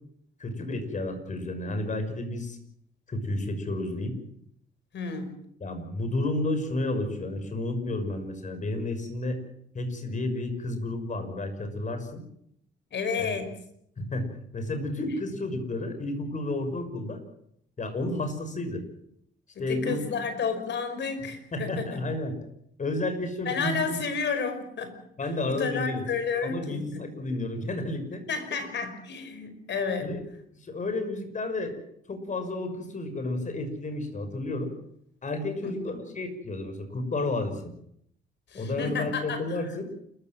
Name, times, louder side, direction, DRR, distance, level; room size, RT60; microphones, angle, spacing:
voice 1, 0.4-2.6 3.1-4.1 5.6-9.4 9.7-12.2 13.2-13.3 14.0-14.2 14.5-17.2 17.8-18.8 19.6-20.0 21.5-22.4 22.8-24.0 25.2-26.0 26.4-28.2 30.0-30.2 30.6-31.8 32.1-34.7 35.2-37.7 38.5-39.9, left 2 dB, 40° left, 8 dB, 6.1 m, -31 dB
voice 2, 4.9-5.4 12.9-13.5 19.6-22.0 23.5-27.1 28.3-30.1 35.6-36.0 38.5-39.7, left 5 dB, 65° left, 9 dB, 5.3 m, -31 dB
29.5 x 15.0 x 7.8 m, 0.72 s
cardioid pair, 90°, 20 cm